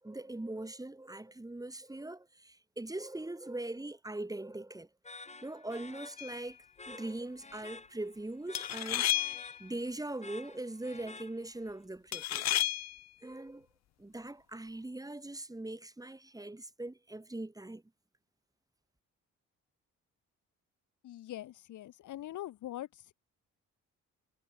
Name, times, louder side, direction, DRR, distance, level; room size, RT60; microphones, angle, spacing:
voice 1, 0.0-4.9 5.4-6.6 6.9-9.1 9.6-12.5 13.2-13.7 14.0-17.8, right 2 dB, 10° right, 3.4 m, -41 dB
sound 1, 5.0-11.8, left 3 dB, 20° left, 3.7 m, -51 dB
sound 2, 6.2-6.5 8.5-9.6 12.1-13.0, left 13 dB, 60° left, 0.7 m, -32 dB
voice 2, 21.0-22.9, left 13 dB, 75° left, 2.5 m, -42 dB
cardioid pair, 90°, 30 cm